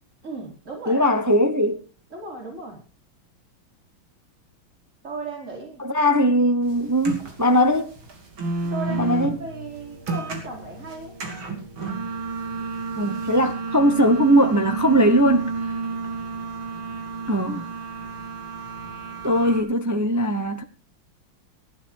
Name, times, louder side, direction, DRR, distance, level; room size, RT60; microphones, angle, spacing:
voice 1, 0.2-1.0 2.1-2.8 5.0-5.8 8.6-11.2 17.3-17.5, right 3 dB, 35° right, 4.8 m, -36 dB
voice 2, 0.9-1.8 5.8-7.9 9.0-9.3 12.9-15.7 17.3-17.6 19.2-20.6, equal, 20° right, 0.5 m, -20 dB
sound 1, 6.6-19.6, right 3 dB, 80° right, 3.5 m, -31 dB
15.5 x 11.5 x 4.6 m
omnidirectional pair, 2.2 m